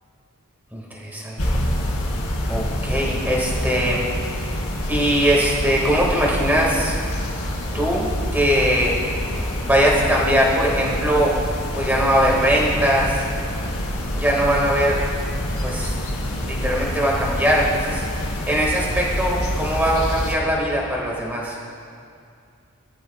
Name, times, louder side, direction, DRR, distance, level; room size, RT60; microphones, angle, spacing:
voice 1, 0.7-1.6 2.5-4.0 4.9-7.0 7.7-8.9 9.6-11.4 11.7-13.2 14.1-15.0 15.6-15.9 16.4-18.1 18.5-21.6, equal, 10° right, -3 dB, 2.0 m, -21 dB
sound 1, 1.4-20.3, equal, 85° left, 2.6 m, -26 dB
18.5 x 13.5 x 2.4 m, 2.4 s
head